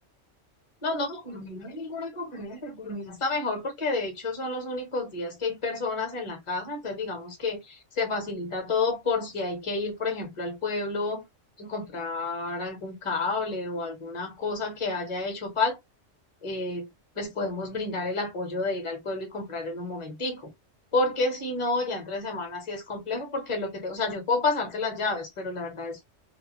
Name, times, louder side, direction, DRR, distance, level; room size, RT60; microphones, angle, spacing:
voice 1, 0.8-7.6 8.0-11.2 11.6-15.8 16.4-16.8 17.2-20.4 20.9-26.0, left 3 dB, 25° left, 1.0 m, -30 dB
2.6 x 2.3 x 2.9 m
omnidirectional pair, 1.3 m